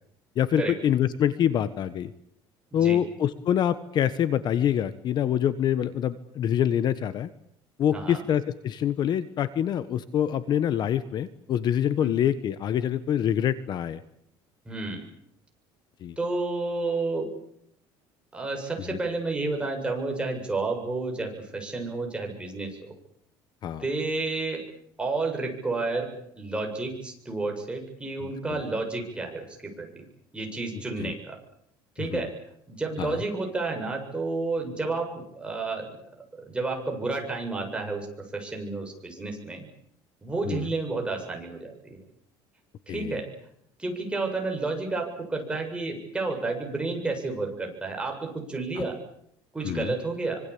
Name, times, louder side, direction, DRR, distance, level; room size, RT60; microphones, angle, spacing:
voice 1, 0.4-2.1 2.7-7.3 7.8-14.0 16.0-16.2 23.6-23.8 28.5-28.6 31.0-31.1 32.0-32.2 33.0-33.2 40.5-40.7 42.9-43.2 49.6-49.9, left 10 dB, 45° left, 14 dB, 1.3 m, -25 dB
voice 2, 14.7-15.0 16.2-17.3 18.3-22.9 23.8-24.6 25.0-30.1 30.3-31.4 32.0-32.3 32.7-36.0 36.4-39.7 40.2-42.0 42.9-43.3 43.8-49.0 49.5-50.4, right 3 dB, 10° right, 2 dB, 7.5 m, -31 dB
25.5 x 24.5 x 8.7 m, 0.72 s
cardioid pair, 130°, 10 cm